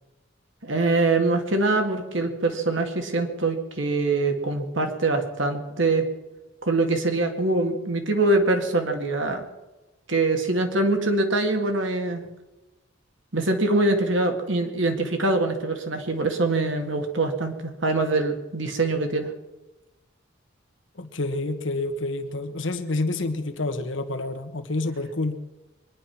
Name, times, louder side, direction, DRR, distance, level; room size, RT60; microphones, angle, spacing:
voice 1, 0.6-6.1 6.6-9.5 10.1-12.2 13.3-19.3, right 2 dB, 80° right, 5 dB, 2.0 m, -24 dB
voice 2, 21.0-25.4, left 2 dB, 75° left, 8 dB, 1.3 m, -28 dB
23.0 x 10.5 x 5.9 m, 1.1 s
head